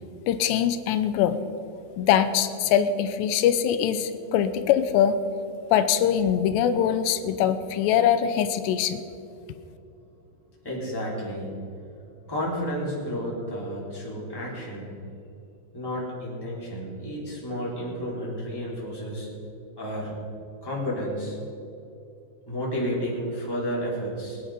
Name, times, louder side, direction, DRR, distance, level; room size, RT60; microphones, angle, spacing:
voice 1, 0.3-1.4 2.0-5.2 5.7-9.0, left 9 dB, 90° left, 10 dB, 2.9 m, -22 dB
voice 2, 10.6-11.5 12.2-14.9 15.7-19.3 19.8-20.1 20.6-21.4 22.5-24.4, equal, 5° left, -6 dB, 3.4 m, -31 dB
22.0 x 9.7 x 5.1 m, 2.7 s
omnidirectional pair, 4.9 m